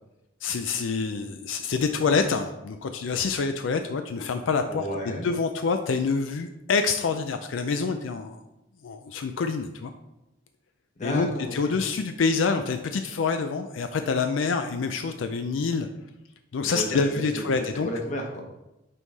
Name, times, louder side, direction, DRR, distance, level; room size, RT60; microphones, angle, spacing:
voice 1, 0.4-4.9 5.2-8.4 8.8-9.9 11.0-15.9 16.5-17.9, left 4 dB, 85° left, 7 dB, 0.4 m, -26 dB
voice 2, 4.7-5.2 11.0-11.5 16.7-18.4, equal, 40° left, 1 dB, 1.2 m, -32 dB
5.5 x 4.7 x 4.0 m, 0.94 s
head